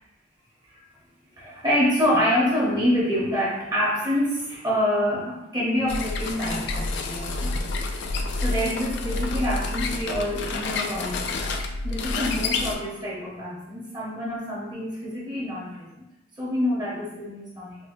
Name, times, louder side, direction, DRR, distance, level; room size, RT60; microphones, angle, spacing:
voice 1, 1.4-7.6 7.9-8.1 8.3-11.3 11.8-16.1 16.4-17.8, equal, 20° right, -6 dB, 0.7 m, -26 dB
sound 1, 5.9-12.8, left 3 dB, 55° left, 0.3 m, -28 dB
3.9 x 2.1 x 2.5 m, 0.95 s
head